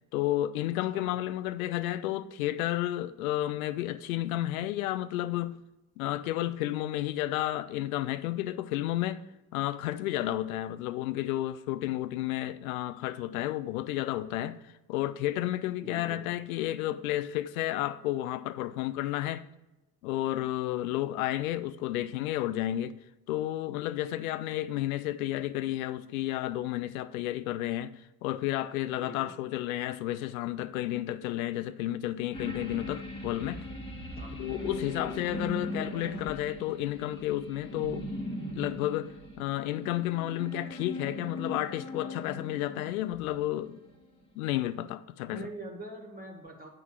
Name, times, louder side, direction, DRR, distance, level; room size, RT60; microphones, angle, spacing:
voice 1, 0.1-5.6 6.0-9.3 9.5-14.6 14.9-19.5 20.0-22.9 23.3-33.6 34.4-38.1 38.6-43.8 44.4-45.5, left 14 dB, 60° left, 0.5 m, -32 dB
voice 2, 0.9-1.2 15.8-16.2 29.0-29.2 34.1-34.5 45.3-46.7, right 1 dB, 20° right, 1.7 m, -43 dB
sound 1, 32.3-44.1 44.5-44.6, left 1 dB, 10° left, 1.5 m, -40 dB
9.3 x 3.8 x 6.2 m
figure-of-eight pair, 60°, 48 cm